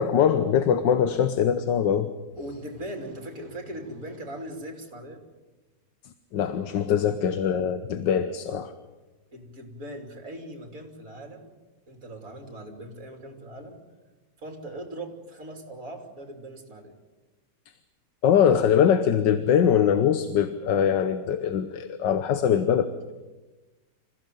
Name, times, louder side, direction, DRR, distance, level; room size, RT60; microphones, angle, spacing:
voice 1, 0.0-2.1 6.3-8.7 18.2-22.9, left 8 dB, 80° left, 11 dB, 1.7 m, -22 dB
voice 2, 2.3-5.2 9.3-11.5 11.9-13.8 14.4-17.0, right 1 dB, 50° right, 4 dB, 3.6 m, -40 dB
26.5 x 16.0 x 9.3 m, 1.2 s
omnidirectional pair, 1.9 m